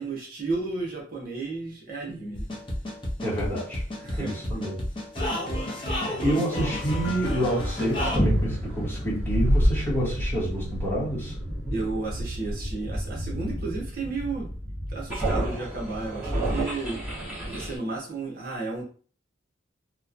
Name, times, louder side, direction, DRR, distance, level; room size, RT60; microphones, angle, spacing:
voice 1, 0.0-2.5 3.9-4.4 11.7-14.5 14.9-18.8, right 3 dB, 50° right, -2 dB, 0.8 m, -33 dB
sound 1, 2.3-8.2, left 1 dB, 25° left, 0.6 m, -31 dB
voice 2, 3.2-3.8 4.1-4.8 5.7-11.4, right 1 dB, 10° left, -6 dB, 1.0 m, -28 dB
sound 2, 6.7-17.8, equal, 10° right, 1.2 m, -29 dB
sound 3, 11.6-14.4, right 2 dB, 80° right, 0.3 m, -42 dB
2.9 x 2.2 x 2.5 m, 0.41 s
head